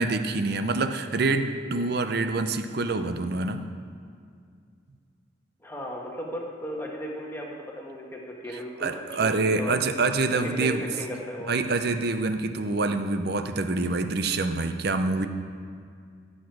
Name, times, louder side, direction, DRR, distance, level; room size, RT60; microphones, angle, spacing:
voice 1, 0.0-3.6 8.8-10.8 11.5-15.3, right 3 dB, 55° right, 8 dB, 0.6 m, -26 dB
voice 2, 5.6-9.7 10.3-11.5, equal, 10° left, -2 dB, 1.3 m, -36 dB
15.0 x 6.5 x 4.7 m, 2.2 s
head